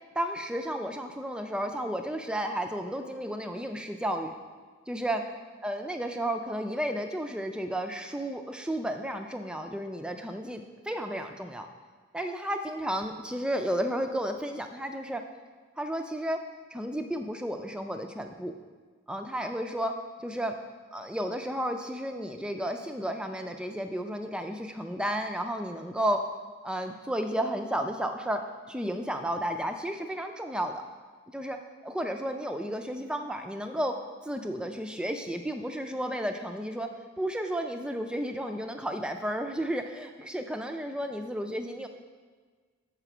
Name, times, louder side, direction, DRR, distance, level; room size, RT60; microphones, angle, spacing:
voice 1, 0.2-4.4 4.9-5.2 5.6-11.7 12.1-15.2 15.8-16.4 16.7-18.5 19.1-19.9 20.2-20.6 20.9-26.2 26.6-28.4 28.7-30.8 31.3-31.6 31.8-34.0 34.2-36.9 37.2-41.9, equal, 5° right, 5 dB, 0.3 m, -32 dB
6.7 x 5.0 x 6.0 m, 1.5 s
head